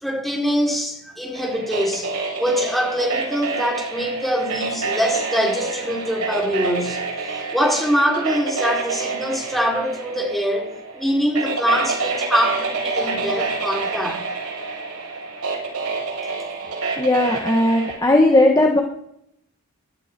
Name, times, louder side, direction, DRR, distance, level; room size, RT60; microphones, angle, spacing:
voice 1, 0.0-2.1 2.4-7.0 7.5-14.2, equal, ahead, 4.0 m, -23 dB
sound 1, 1.3-18.0, right 3 dB, 85° right, 7.1 m, -28 dB
voice 2, 17.0-18.8, left 1 dB, 15° left, 1.5 m, -17 dB
16.5 x 12.5 x 4.6 m
head